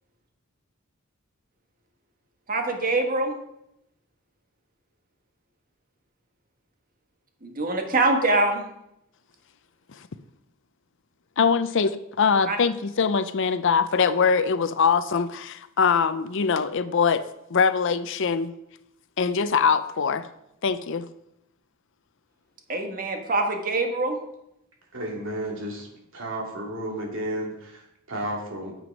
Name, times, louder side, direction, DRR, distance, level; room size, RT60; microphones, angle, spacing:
voice 1, 2.5-3.4 7.4-8.6 12.4-12.6 22.7-24.2, right 2 dB, 40° right, 4 dB, 1.4 m, -24 dB
voice 2, 11.4-11.9 12.2-17.2 17.5-18.5 19.2-20.3 20.6-21.1, left 5 dB, 60° left, 13 dB, 0.6 m, -22 dB
voice 3, 24.9-25.9 26.1-28.8, right 1 dB, 60° right, -1 dB, 2.8 m, -32 dB
9.2 x 7.7 x 5.2 m, 0.82 s
head